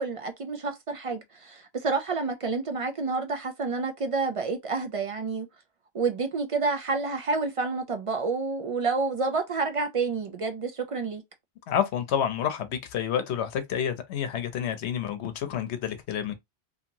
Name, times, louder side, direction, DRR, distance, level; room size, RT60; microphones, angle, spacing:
voice 1, 0.0-5.5 5.9-11.2, right 4 dB, 60° right, 0.3 m, -29 dB
voice 2, 11.7-16.3, left 9 dB, 90° left, 0.9 m, -29 dB
2.8 x 2.7 x 2.6 m
omnidirectional pair, 1.1 m